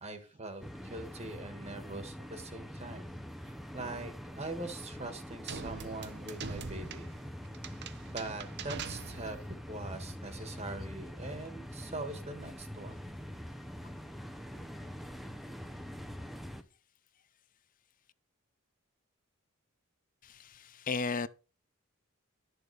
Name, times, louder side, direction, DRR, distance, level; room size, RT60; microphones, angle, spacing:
voice 1, 0.0-3.1 3.4-7.1 8.1-9.4 9.7-13.0, right 2 dB, 30° right, 1.6 m, -42 dB
sound 1, 0.6-16.6, equal, ahead, 0.7 m, -44 dB
sound 2, 5.5-9.6, right 5 dB, 50° right, 0.9 m, -43 dB
voice 2, 20.2-21.3, left 4 dB, 40° left, 0.6 m, -35 dB
12.0 x 6.8 x 4.8 m
head